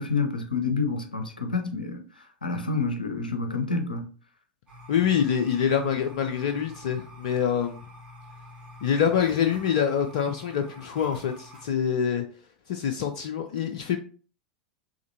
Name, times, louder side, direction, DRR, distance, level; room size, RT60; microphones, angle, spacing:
voice 1, 0.0-2.0 2.4-4.1, left 4 dB, 80° left, 0.7 m, -28 dB
sound 1, 4.7-11.7, left 1 dB, 20° right, 2.1 m, -47 dB
voice 2, 4.9-7.8 8.8-12.2 12.7-14.0, left 8 dB, 55° left, 0.4 m, -25 dB
5.0 x 3.4 x 2.7 m
figure-of-eight pair, 85°, 5 cm